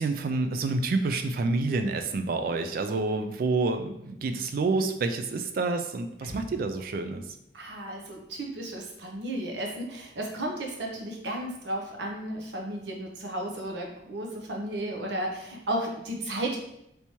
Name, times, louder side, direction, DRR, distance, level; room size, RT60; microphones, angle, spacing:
voice 1, 0.0-7.3, right 3 dB, 50° right, 7 dB, 0.3 m, -28 dB
sound 1, 6.2-7.2, left 1 dB, 50° left, 0.5 m, -44 dB
voice 2, 7.5-16.6, right 1 dB, 70° right, 0 dB, 0.7 m, -34 dB
3.3 x 3.0 x 2.8 m, 0.81 s
head